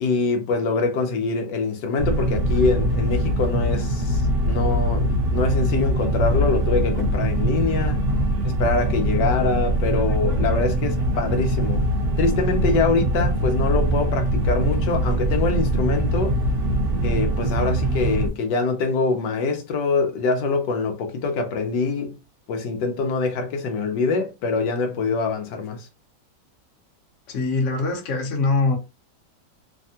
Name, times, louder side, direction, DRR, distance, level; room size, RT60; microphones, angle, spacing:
voice 1, 0.0-8.0 8.4-11.8 12.2-16.4 17.0-22.2 22.5-25.9, left 4 dB, 75° left, 1.2 m, -24 dB
sound 1, 2.0-18.3, right 1 dB, 45° right, 1.0 m, -22 dB
voice 2, 27.3-28.8, left 3 dB, 50° left, 1.0 m, -22 dB
3.3 x 2.1 x 2.7 m
omnidirectional pair, 1.9 m